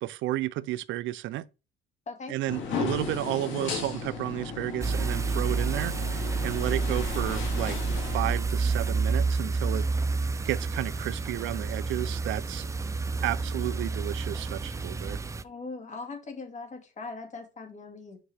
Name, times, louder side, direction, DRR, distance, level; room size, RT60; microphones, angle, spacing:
voice 1, 0.0-1.5 2.3-9.9 10.5-12.7 13.2-15.2, right 15 dB, 75° right, 0.4 m, -32 dB
sound 1, 2.5-8.4, left 5 dB, 75° left, 2.3 m, -35 dB
sound 2, 4.8-15.4, right 4 dB, 15° right, 0.4 m, -29 dB
voice 2, 15.4-18.2, left 3 dB, 35° left, 2.0 m, -40 dB
7.9 x 5.4 x 3.3 m
cardioid pair, 115°, 20 cm